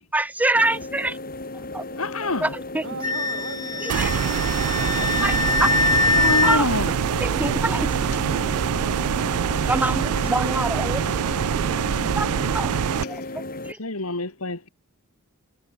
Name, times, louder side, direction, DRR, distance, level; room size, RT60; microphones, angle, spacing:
voice 1, 0.1-1.2 1.7-1.8 2.4-2.8 3.8-4.1 5.2-5.3 5.6-5.7 6.4-6.7 7.2-7.9 9.6-11.2 12.2-12.3 12.5-12.7 13.1-13.2 13.6-13.8, right 2 dB, 5° right, 0.6 m, -25 dB
sound 1, 0.5-13.7, left 2 dB, 40° left, 6.8 m, -35 dB
voice 2, 2.0-2.5 6.2-6.9 13.0-13.1 13.8-14.7, left 2 dB, 75° left, 3.6 m, -26 dB
voice 3, 2.8-5.4, right 3 dB, 55° right, 5.1 m, -39 dB
Wind instrument woodwind instrument, 3.0-6.6, left 3 dB, 15° left, 2.5 m, -23 dB
sound 2, 3.9-13.0, right 8 dB, 85° right, 0.4 m, -24 dB
head